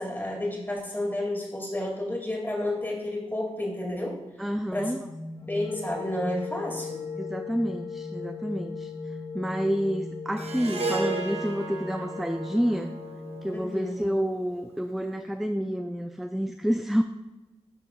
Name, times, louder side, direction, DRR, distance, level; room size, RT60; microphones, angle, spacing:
voice 1, 0.0-4.2 4.7-4.9 5.4-7.0 13.5-14.0, left 1 dB, 15° left, -1 dB, 2.0 m, -31 dB
voice 2, 4.4-5.0 7.2-8.9 9.3-12.9 13.4-17.0, equal, ahead, 6 dB, 0.3 m, -29 dB
sound 1, 4.7-13.6, left 4 dB, 45° left, 0.7 m, -38 dB
Harp, 10.4-14.8, right 3 dB, 60° right, 0.9 m, -34 dB
11.0 x 4.1 x 2.2 m, 1.1 s
cardioid pair, 50°, 12 cm